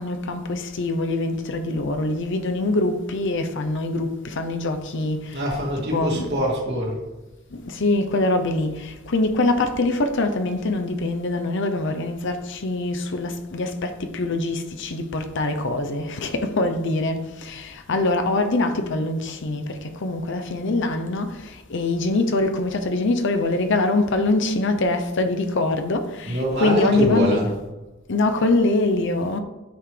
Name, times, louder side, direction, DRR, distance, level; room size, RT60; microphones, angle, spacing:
voice 1, 0.0-5.3 5.9-6.3 7.8-8.8 9.1-17.2 17.4-19.6 20.0-21.3 21.7-27.4 28.1-29.4, left 2 dB, 60° left, 0.7 m, -23 dB
voice 2, 5.3-7.0 26.2-27.5, equal, 55° right, 2.8 m, -23 dB
9.2 x 7.1 x 3.3 m
head